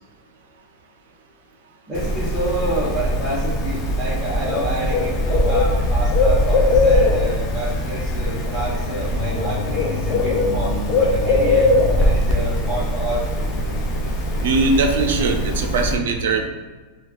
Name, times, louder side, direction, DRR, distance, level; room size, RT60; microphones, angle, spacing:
Bird, 1.9-15.9, left 1 dB, 35° left, 0.5 m, -20 dB
voice 1, 1.9-13.5, right 1 dB, ahead, -13 dB, 0.9 m, -28 dB
voice 2, 14.4-16.5, right 3 dB, 80° right, 3 dB, 0.4 m, -20 dB
3.2 x 2.3 x 2.4 m, 1.3 s
supercardioid pair, 150°, 0 cm